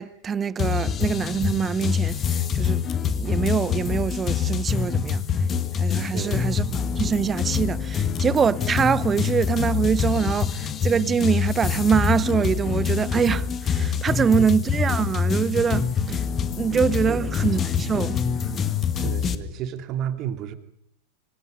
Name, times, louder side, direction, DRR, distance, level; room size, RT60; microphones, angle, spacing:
voice 1, 0.0-5.2 5.8-16.3 16.6-18.2, right 6 dB, 20° right, 0.8 m, -24 dB
sound 1, 0.6-19.3, left 7 dB, 25° left, 1.9 m, -25 dB
voice 2, 6.1-6.6 14.4-14.5 17.1-17.3 18.9-20.5, right 10 dB, 35° right, 2.7 m, -31 dB
26.0 x 25.5 x 5.4 m
figure-of-eight pair, 90°, 0 cm